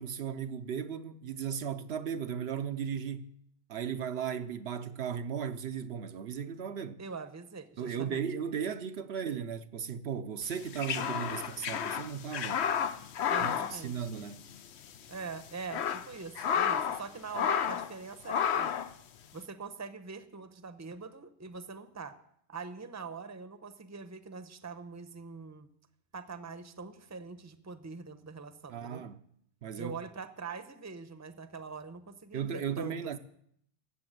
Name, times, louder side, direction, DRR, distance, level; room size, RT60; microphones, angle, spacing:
voice 1, 0.0-3.3 3.7-7.0 7.8-12.6 13.4-14.4 28.7-29.2 29.6-29.9 32.3-33.2, right 7 dB, 70° right, 0.9 m, -36 dB
voice 2, 7.0-8.3 13.3-14.1 15.1-18.7 19.3-22.2 22.5-25.7 26.1-29.0 29.8-33.2, right 5 dB, 15° right, 0.7 m, -43 dB
sound 1, 10.5-14.6 14.8-15.0 15.5-17.0 17.3-17.9 18.3-18.9, left 8 dB, 75° left, 1.0 m, -31 dB
15.5 x 6.9 x 9.2 m
omnidirectional pair, 1.1 m